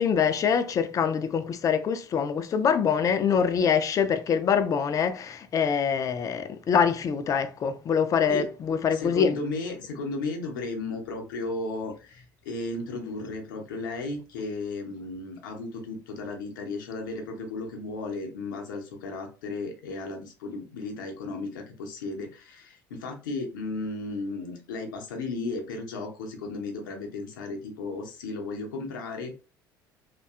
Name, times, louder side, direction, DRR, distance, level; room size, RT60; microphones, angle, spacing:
voice 1, 0.0-9.3, left 7 dB, 30° left, 0.3 m, -24 dB
voice 2, 8.9-29.3, left 3 dB, 70° left, 0.6 m, -34 dB
2.6 x 2.2 x 2.3 m
figure-of-eight pair, 60°, 11 cm